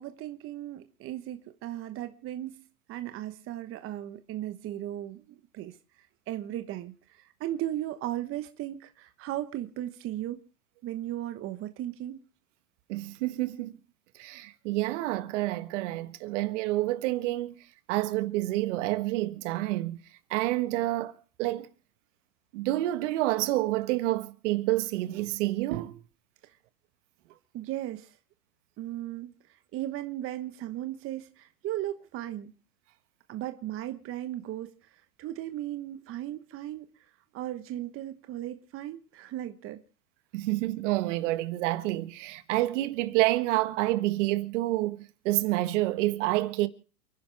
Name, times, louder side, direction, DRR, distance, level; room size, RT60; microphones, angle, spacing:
voice 1, 0.0-2.6 2.9-5.8 6.3-10.4 10.8-12.2 26.4-26.5 27.5-28.2 28.8-32.5 33.3-39.8, right 13 dB, 30° right, 1.1 m, -36 dB
voice 2, 12.9-13.7 14.1-17.5 17.9-20.0 20.3-21.7 22.5-26.0 40.3-46.7, right 17 dB, 50° right, 1.5 m, -28 dB
29.0 x 10.5 x 3.4 m
hypercardioid pair, 115°, 45 cm